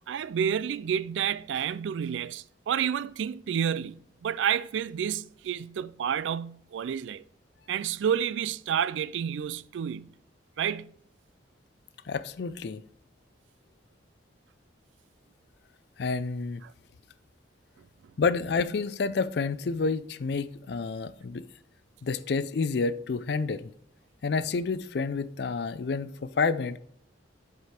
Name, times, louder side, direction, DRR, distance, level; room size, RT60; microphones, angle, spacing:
voice 1, 0.1-7.2 7.7-10.1 10.6-10.9, right 8 dB, 80° right, 0.3 m, -30 dB
voice 2, 12.1-12.8 16.0-16.6 18.2-21.4 22.0-23.7 24.2-26.8, left 4 dB, 60° left, 0.4 m, -29 dB
8.0 x 5.0 x 4.3 m
head